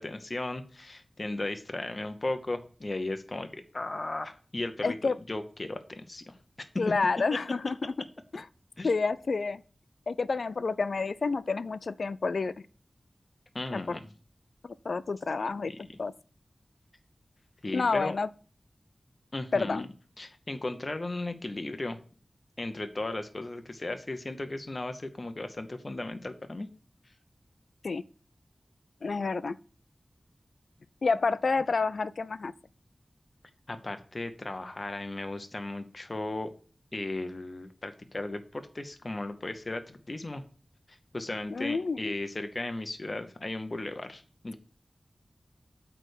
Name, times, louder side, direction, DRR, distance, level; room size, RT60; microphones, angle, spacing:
voice 1, 0.0-5.0 5.3-6.7 8.8-8.9 13.5-14.0 15.6-15.8 17.6-18.1 19.3-19.9 20.2-22.0 22.6-26.7 33.7-36.5 36.9-40.4 40.9-44.6, left 2 dB, 40° left, 0.9 m, -36 dB
voice 2, 4.8-5.2 6.8-7.9 8.3-8.4 8.8-9.6 10.1-12.5 13.7-14.0 14.6-15.7 16.0-16.1 17.7-18.3 19.5-19.9 27.8-28.0 29.0-29.6 31.0-32.5 41.5-42.1, left 4 dB, 80° left, 0.4 m, -29 dB
8.4 x 3.4 x 6.5 m
wide cardioid pair, 90°, 0 cm